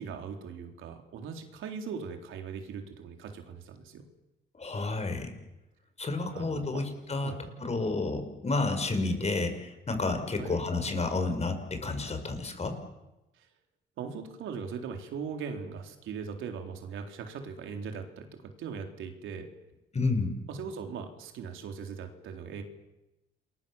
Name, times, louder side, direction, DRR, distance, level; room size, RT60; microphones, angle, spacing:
voice 1, 0.0-4.0 6.3-6.8 7.2-7.4 10.4-10.6 13.4-13.5 14.0-19.5 20.5-22.6, right 6 dB, 80° right, 4 dB, 3.9 m, -40 dB
voice 2, 4.6-5.3 6.0-7.3 7.6-12.8 19.9-20.3, left 3 dB, 35° left, 7 dB, 5.6 m, -30 dB
28.5 x 22.0 x 7.3 m, 0.98 s
cardioid pair, 90°, 20 cm